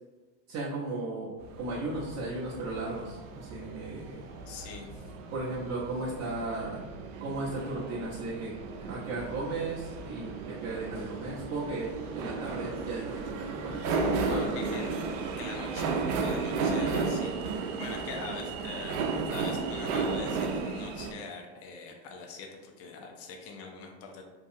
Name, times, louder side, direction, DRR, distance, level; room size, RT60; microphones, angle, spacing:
voice 1, 0.5-4.2 5.3-6.8 7.2-8.5 8.8-14.8, right 2 dB, 40° right, -6 dB, 0.6 m, -36 dB
sound 1, 1.4-21.1, right 4 dB, 85° right, 0.5 m, -34 dB
voice 2, 4.5-5.0 14.3-14.9 15.4-24.2, left 4 dB, 40° left, 2 dB, 0.5 m, -43 dB
2.6 x 2.3 x 2.6 m, 1.3 s
supercardioid pair, 95°, 36 cm